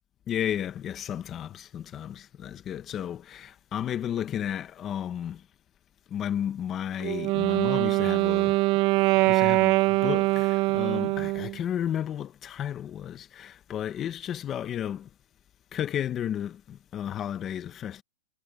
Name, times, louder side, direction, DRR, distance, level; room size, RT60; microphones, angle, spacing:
voice 1, 0.3-5.4 6.1-8.6 9.2-15.1 15.7-18.0, left 10 dB, 20° left, 0.9 m, -33 dB
Wind instrument woodwind instrument, 7.0-11.6, right 21 dB, 35° right, 0.7 m, -23 dB
supercardioid pair, 165°, 0 cm